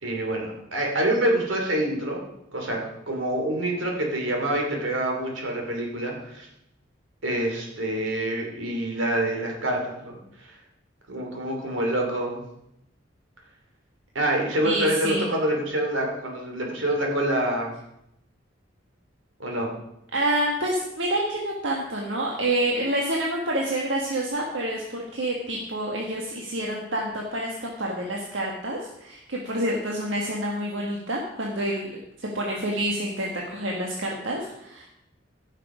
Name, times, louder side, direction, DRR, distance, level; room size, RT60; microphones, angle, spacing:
voice 1, 0.0-2.2 2.5-6.5 7.2-10.2 11.1-12.4 14.1-17.8 19.4-19.7, right 1 dB, 90° right, 1 dB, 2.9 m, -26 dB
voice 2, 14.6-15.2 20.1-34.9, right 1 dB, 75° right, -2 dB, 1.6 m, -28 dB
15.0 x 6.6 x 5.0 m, 0.82 s
head